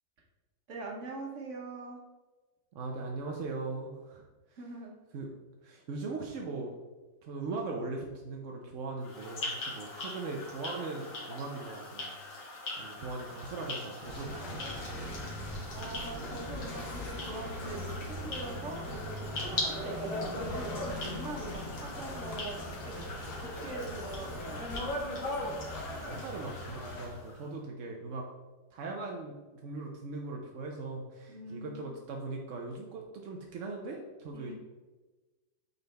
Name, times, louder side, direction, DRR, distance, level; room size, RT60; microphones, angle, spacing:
voice 1, 0.7-2.0 4.6-4.9 15.7-22.6 22.8-23.1 23.4-24.7 31.3-32.0 34.3-34.5, right 2 dB, 45° right, 0 dB, 1.3 m, -43 dB
voice 2, 2.7-4.2 4.5-4.6 5.1-5.3 5.6-6.7 7.2-12.2 12.8-14.6 25.9-28.3 28.7-34.5, right 3 dB, 60° right, 1 dB, 0.8 m, -39 dB
sound 1, 9.0-27.5, left 2 dB, 55° left, 2.0 m, -42 dB
sound 2, 14.0-27.1, left 1 dB, 80° left, 2.0 m, -39 dB
8.2 x 4.1 x 3.3 m, 1.2 s
omnidirectional pair, 2.0 m